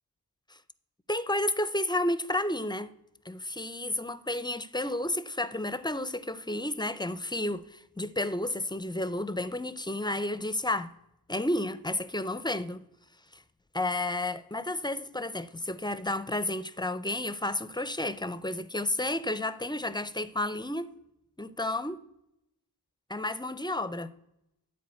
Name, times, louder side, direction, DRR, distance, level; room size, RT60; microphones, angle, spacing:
voice 1, 1.1-2.9 3.3-10.9 11.3-12.8 13.3-13.4 13.7-20.9 21.4-22.0 23.1-24.1, left 1 dB, 10° left, 0.4 m, -31 dB
12.5 x 4.5 x 8.2 m
wide cardioid pair, 105°, 39 cm